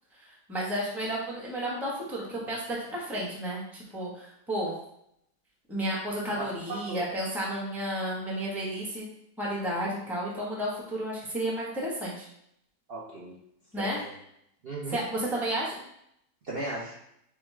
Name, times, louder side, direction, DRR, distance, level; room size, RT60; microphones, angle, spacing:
voice 1, 0.2-4.7 5.7-9.1 9.4-12.3 13.7-14.0 14.9-15.8, right 1 dB, ahead, -5 dB, 0.8 m, -32 dB
voice 2, 6.4-7.0 12.9-13.4 13.8-14.1 14.6-15.0 16.4-16.9, right 2 dB, 50° right, -5 dB, 0.8 m, -36 dB
6.9 x 2.3 x 3.2 m, 0.75 s
omnidirectional pair, 1.7 m